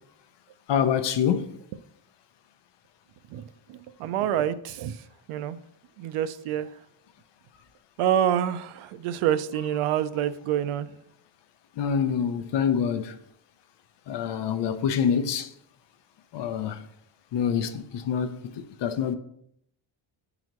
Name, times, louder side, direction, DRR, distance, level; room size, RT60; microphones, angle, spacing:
voice 1, 0.7-1.5 11.8-13.1 14.1-15.5 16.3-16.8 17.3-19.1, left 7 dB, 60° left, 0.7 m, -26 dB
voice 2, 3.7-5.0 5.3-5.6 6.0-6.7 8.0-10.9, right 10 dB, 90° right, 0.6 m, -27 dB
10.5 x 3.9 x 3.0 m
cardioid pair, 170°, 49 cm